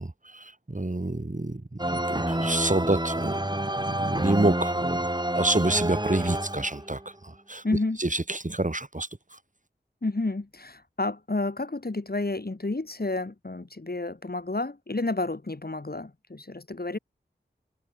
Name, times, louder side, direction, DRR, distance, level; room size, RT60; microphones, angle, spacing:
voice 1, 0.0-5.0 5.3-7.6 8.0-9.4, right 2 dB, 40° right, 5.9 m, -28 dB
sound 1, 1.8-7.0, right 1 dB, 20° right, 7.2 m, -28 dB
voice 2, 7.6-8.0 10.0-17.0, left 2 dB, 55° left, 4.2 m, -30 dB
wide cardioid pair, 50°, 19 cm